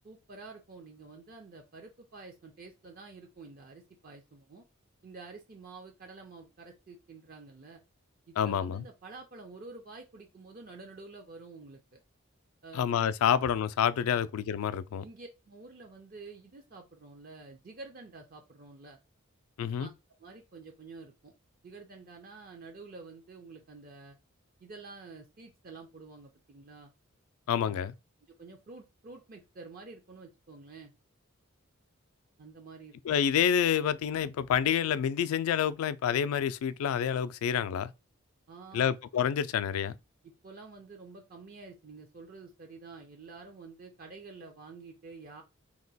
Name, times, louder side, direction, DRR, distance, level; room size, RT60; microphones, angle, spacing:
voice 1, 0.0-4.6 5.0-7.8 8.3-12.0 12.6-12.9 14.1-14.3 15.0-19.0 19.8-19.9 20.2-21.3 21.6-24.2 24.6-26.9 27.6-27.8 28.3-30.9 32.4-33.2 38.5-38.9 40.2-45.4, right 3 dB, 45° right, 0.5 m, -49 dB
voice 2, 8.4-8.8 12.7-15.0 19.6-19.9 27.5-27.9 33.1-37.9 38.7-40.0, left 8 dB, 80° left, 0.3 m, -28 dB
2.9 x 2.2 x 4.0 m
head